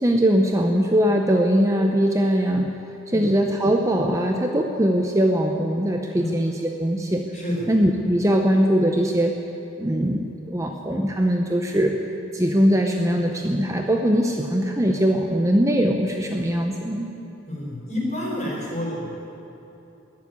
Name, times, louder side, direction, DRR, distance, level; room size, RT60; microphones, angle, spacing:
voice 1, 0.0-2.7 3.1-7.2 7.7-9.3 9.8-11.9 12.3-17.1, equal, 15° right, 2 dB, 0.7 m, -21 dB
voice 2, 7.3-7.6 17.5-19.3, left 1 dB, 35° left, -3 dB, 4.6 m, -29 dB
20.5 x 7.4 x 9.5 m, 2.9 s
head